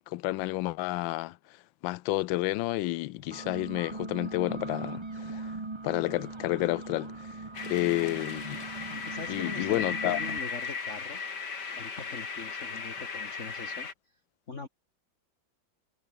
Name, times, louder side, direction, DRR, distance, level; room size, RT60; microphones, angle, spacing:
voice 1, 0.1-1.4 1.8-5.6 5.8-8.6 9.3-10.2, left 17 dB, 80° left, 1.3 m, -30 dB
sound 1, 3.2-10.4, right 3 dB, 20° right, 0.9 m, -40 dB
sound 2, 7.5-13.9, left 5 dB, 60° left, 3.1 m, -37 dB
voice 2, 8.9-11.2 11.7-13.9 14.5-14.7, left 4 dB, 40° left, 2.4 m, -42 dB
omnidirectional pair, 2.1 m